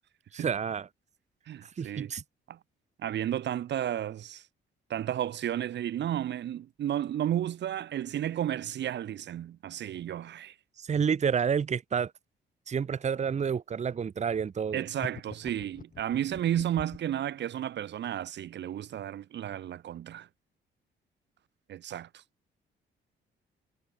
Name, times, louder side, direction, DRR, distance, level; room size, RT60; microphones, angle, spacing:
voice 1, 0.3-0.9 1.6-2.2 10.8-12.1 12.7-14.9, right 7 dB, 35° right, 0.9 m, -29 dB
voice 2, 1.5-2.1 2.5-2.6 3.0-4.4 4.9-10.5 14.7-20.3 21.7-22.2, right 11 dB, 60° right, 1.0 m, -32 dB
sound 1, 15.0-17.2, left 6 dB, 45° left, 3.1 m, -44 dB
cardioid pair, 90°, 20 cm